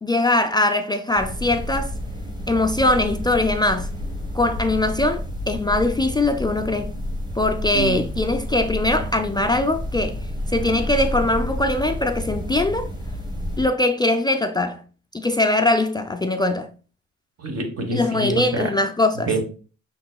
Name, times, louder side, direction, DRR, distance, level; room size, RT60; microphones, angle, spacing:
voice 1, 0.0-1.9 2.5-3.9 4.3-6.9 7.4-12.9 13.6-14.8 15.1-16.7 17.9-19.3, left 2 dB, 15° left, 0.3 m, -21 dB
sound 1, 1.2-13.7, equal, 15° right, 1.1 m, -30 dB
voice 2, 7.7-8.1 17.4-18.7 19.3-19.4, right 2 dB, 50° right, 1.2 m, -26 dB
5.3 x 3.8 x 2.2 m
cardioid pair, 90°, 30 cm